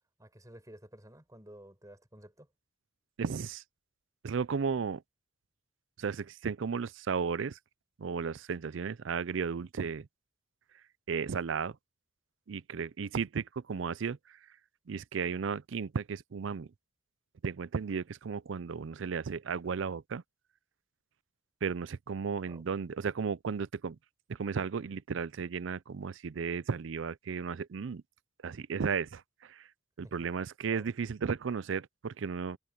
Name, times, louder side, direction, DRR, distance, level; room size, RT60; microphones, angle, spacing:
voice 1, 0.2-2.5 22.5-22.6 30.0-30.1 30.7-30.9, right 1 dB, 15° right, 5.4 m, -53 dB
voice 2, 3.2-3.6 4.2-5.0 6.0-7.6 8.0-10.1 11.1-11.8 12.5-14.4 14.9-16.7 17.4-20.2 21.6-24.0 24.3-28.0 28.4-29.7 30.0-32.6, right 6 dB, 70° right, 0.5 m, -34 dB
head